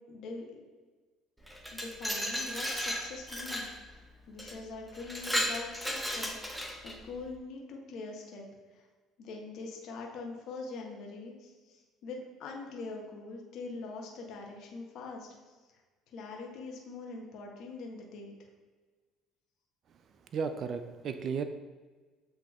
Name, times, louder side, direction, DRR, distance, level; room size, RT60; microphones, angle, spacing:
voice 1, 0.1-0.5 1.7-8.5 8.7-8.8 9.2-15.3 16.1-18.3, left 3 dB, 65° left, 0 dB, 0.9 m, -43 dB
Glass, 1.5-3.7 4.4-4.5 4.9-7.0, equal, ahead, 0.8 m, -34 dB
voice 2, 20.3-21.4, right 6 dB, 55° right, 9 dB, 0.3 m, -34 dB
7.8 x 2.8 x 2.4 m, 1.3 s
hypercardioid pair, 65°, 0 cm